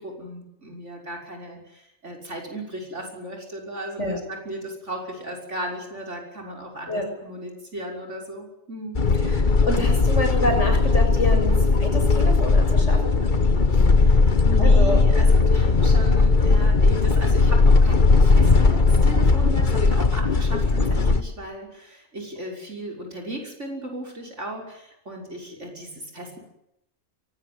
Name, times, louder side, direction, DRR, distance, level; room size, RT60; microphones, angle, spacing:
voice 1, 0.0-9.0 14.0-26.4, right 1 dB, 60° right, 1 dB, 6.4 m, -36 dB
sound 1, 8.9-21.2, left 3 dB, 40° left, 1.5 m, -18 dB
voice 2, 9.3-13.1 13.7-13.8 14.6-15.0, left 1 dB, 60° left, 3 dB, 7.4 m, -27 dB
23.0 x 18.5 x 9.7 m, 0.83 s
omnidirectional pair, 1.4 m